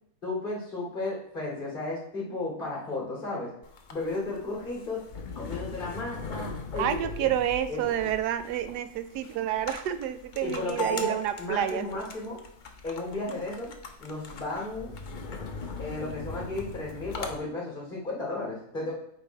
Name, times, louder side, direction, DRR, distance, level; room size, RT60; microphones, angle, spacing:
voice 1, 0.2-3.5 3.9-5.0 5.3-7.3 7.7-8.1 10.4-12.4 12.8-13.7 14.0-14.9 15.8-18.9, left 2 dB, 30° left, -4 dB, 2.6 m, -34 dB
sound 1, 3.6-17.4, left 2 dB, 50° left, 0.5 m, -40 dB
voice 2, 6.8-12.1, right 11 dB, 90° right, 11 dB, 1.2 m, -29 dB
8.2 x 3.4 x 4.5 m, 0.71 s
omnidirectional pair, 1.7 m